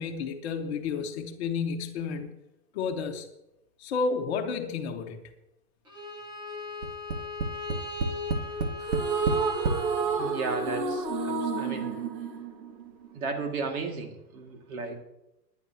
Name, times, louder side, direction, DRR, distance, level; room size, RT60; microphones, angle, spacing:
voice 1, 0.0-2.3 2.7-3.3 3.8-5.3, left 5 dB, 40° left, 3 dB, 1.5 m, -31 dB
Bowed string instrument, 5.9-10.8, left 3 dB, 10° right, 0.9 m, -38 dB
Tap, 6.8-9.9 10.7-10.8 11.1-11.2, right 3 dB, 70° right, 1.8 m, -30 dB
sound 1, 8.8-13.2, right 4 dB, 90° right, 2.3 m, -30 dB
voice 2, 10.2-12.0 13.1-15.0, right 4 dB, 55° right, 4 dB, 2.4 m, -34 dB
21.0 x 10.5 x 2.9 m, 0.90 s
hypercardioid pair, 165°, 50 cm